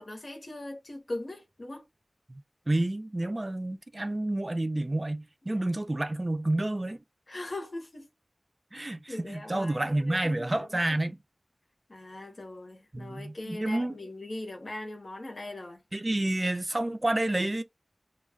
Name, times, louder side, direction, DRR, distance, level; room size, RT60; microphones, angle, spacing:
voice 1, 0.0-1.9 5.5-5.6 7.3-8.1 8.7-10.8 11.9-15.8, left 1 dB, 75° left, 0.8 m, -40 dB
voice 2, 2.7-7.0 8.7-11.2 12.9-14.0 15.9-17.6, right 1 dB, 45° right, 0.3 m, -29 dB
2.2 x 2.1 x 3.4 m
wide cardioid pair, 45°, 0 cm